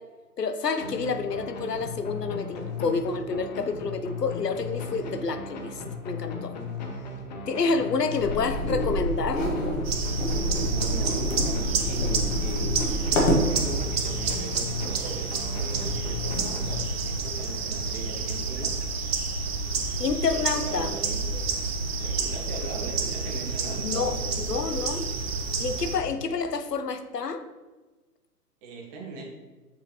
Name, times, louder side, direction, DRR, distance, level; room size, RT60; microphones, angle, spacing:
voice 1, 0.4-5.8 6.0-6.5 7.5-9.4 20.0-20.9 23.8-25.0 25.6-27.4, left 4 dB, 80° left, 9 dB, 0.8 m, -28 dB
sound 1, 0.8-17.3, left 4 dB, 30° left, 0.7 m, -36 dB
voice 2, 7.6-8.2 10.4-12.7 13.1-18.7 19.4-20.0 20.3-24.7 25.8-26.1 28.6-29.2, right 2 dB, 25° right, -1 dB, 1.2 m, -40 dB
sound 2, 8.2-13.5, equal, 50° left, 1.6 m, -27 dB
sound 3, 9.8-26.0, right 4 dB, 40° right, 0.8 m, -29 dB
7.3 x 4.9 x 2.9 m, 1.2 s
figure-of-eight pair, 120°, 48 cm